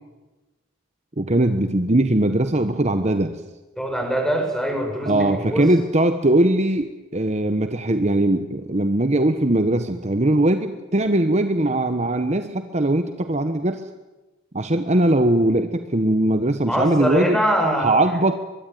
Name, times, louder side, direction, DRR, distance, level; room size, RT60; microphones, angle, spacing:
voice 1, 1.2-3.3 5.0-13.8 14.5-17.4 17.8-18.4, right 1 dB, 35° right, 8 dB, 1.2 m, -20 dB
voice 2, 3.8-5.7 16.6-18.0, equal, 5° left, 2 dB, 6.5 m, -23 dB
23.5 x 22.5 x 9.4 m, 1.1 s
head